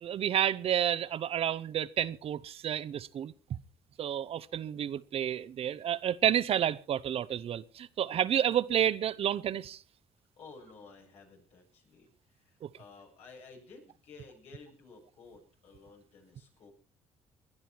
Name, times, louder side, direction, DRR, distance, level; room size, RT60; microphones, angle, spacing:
voice 1, 0.0-3.3 4.0-9.8 12.6-12.7, right 10 dB, 60° right, 0.9 m, -30 dB
voice 2, 10.4-16.7, left 4 dB, 75° left, 7.8 m, -54 dB
20.5 x 11.0 x 4.6 m
supercardioid pair, 65°, 11 cm